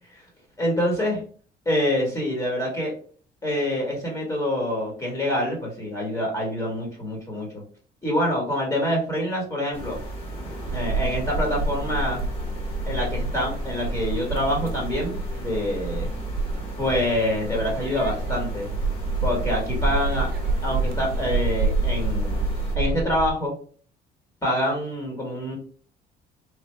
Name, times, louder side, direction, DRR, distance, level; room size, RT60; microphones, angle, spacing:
voice 1, 0.6-1.2 1.6-2.9 3.4-7.6 8.0-10.0 10.7-12.2 12.9-16.1 16.8-18.7 19.2-20.3 20.6-22.4 22.7-23.5 24.4-25.6, left 1 dB, 20° left, -1 dB, 1.2 m, -26 dB
sound 1, 9.7-22.8, right 1 dB, 35° left, 1.4 m, -37 dB
sound 2, 10.7-23.3, right 3 dB, 65° right, 0.5 m, -28 dB
3.2 x 2.2 x 3.1 m, 0.43 s
cardioid pair, 110°, 17 cm